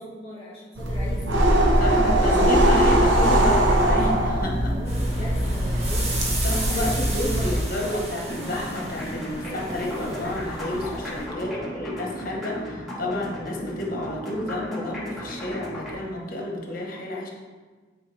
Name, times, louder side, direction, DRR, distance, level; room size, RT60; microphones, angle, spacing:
voice 1, 0.0-1.7 2.2-2.6 4.6-6.2 6.7-7.6 11.4-11.9, equal, 30° left, -8 dB, 2.2 m, -39 dB
sound 1, 0.8-7.6, right 1 dB, 70° right, 0.9 m, -21 dB
voice 2, 1.8-4.8 6.4-17.3, left 1 dB, 50° left, -1 dB, 1.1 m, -30 dB
sound 2, 4.9-11.3, right 1 dB, 35° right, 1.2 m, -34 dB
sound 3, 8.2-15.9, equal, ahead, 1.2 m, -35 dB
9.0 x 4.4 x 3.4 m, 1.4 s
head